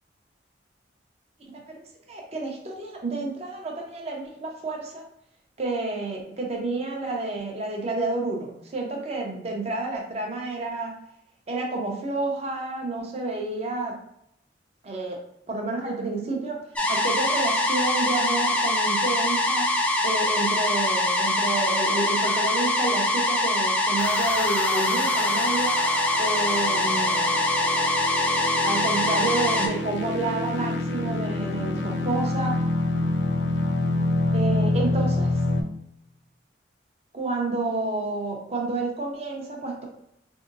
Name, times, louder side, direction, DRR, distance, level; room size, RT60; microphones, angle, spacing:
voice 1, 1.5-5.0 5.6-10.9 11.5-14.0 14.8-15.2 15.5-19.7 20.0-25.8 26.2-27.2 28.6-32.6 34.3-35.4 37.1-39.8, right 2 dB, 35° right, 0 dB, 0.6 m, -30 dB
sound 1, 16.8-29.7, left 1 dB, 5° left, 0.3 m, -23 dB
sound 2, 24.0-35.6, left 2 dB, 75° left, 0.4 m, -27 dB
3.7 x 2.7 x 2.5 m, 0.76 s
head